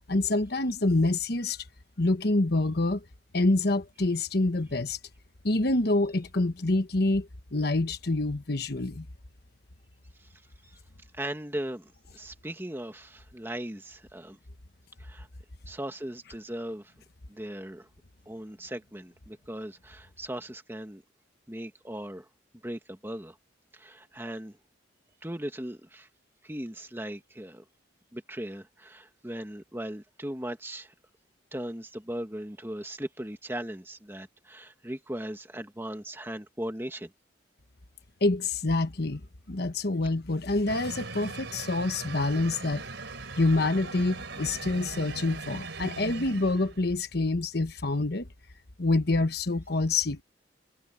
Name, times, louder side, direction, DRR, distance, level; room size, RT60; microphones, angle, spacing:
voice 1, 0.1-1.7 2.0-3.0 3.3-5.0 5.4-9.1 38.2-39.2 39.5-42.8 43.4-48.3 48.8-50.2, left 2 dB, 55° left, 1.2 m, -26 dB
voice 2, 11.1-14.4 15.0-15.3 15.7-16.9 17.3-17.9 18.2-21.0 21.5-22.3 22.6-23.4 23.7-24.6 25.2-26.1 26.4-27.6 28.1-30.9 31.5-37.1, right 1 dB, 10° right, 1.8 m, -38 dB
sound 1, 40.7-47.0, right 3 dB, 70° right, 3.7 m, -40 dB
head